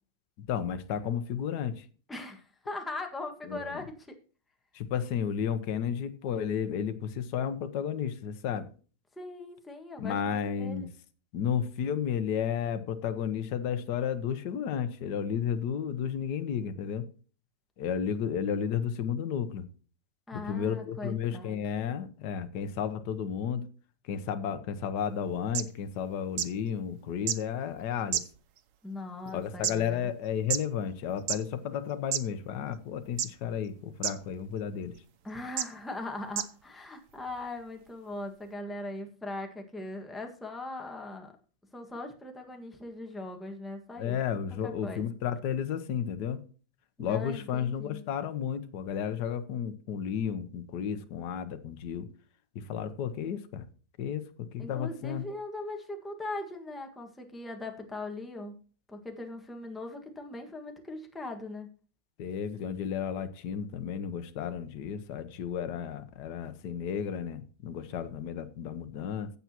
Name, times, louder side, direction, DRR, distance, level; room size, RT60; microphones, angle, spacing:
voice 1, 0.5-1.8 3.5-3.8 4.7-8.7 10.0-10.9 11.3-17.0 17.8-19.7 20.3-23.6 24.0-28.2 29.3-34.9 44.0-46.4 47.0-52.1 52.5-53.6 54.0-55.3 62.2-69.3, left 8 dB, 60° left, 1.4 m, -32 dB
voice 2, 2.1-4.1 9.1-10.9 20.3-21.6 28.8-30.1 35.2-41.4 41.7-44.2 44.6-45.0 47.0-48.0 54.6-58.6 58.9-61.7, left 2 dB, ahead, 1.3 m, -40 dB
sound 1, 25.2-25.3 25.5-25.6 26.4-26.5 27.3-27.4 28.1-28.6 29.3-29.7 30.5-30.6 31.2-31.4 32.1-32.2 33.2-33.5 34.0-34.1 34.9-35.0 35.6-35.7 36.3-36.5 37.3-37.4, right 10 dB, 75° right, 0.7 m, -29 dB
15.5 x 7.0 x 2.9 m
omnidirectional pair, 2.3 m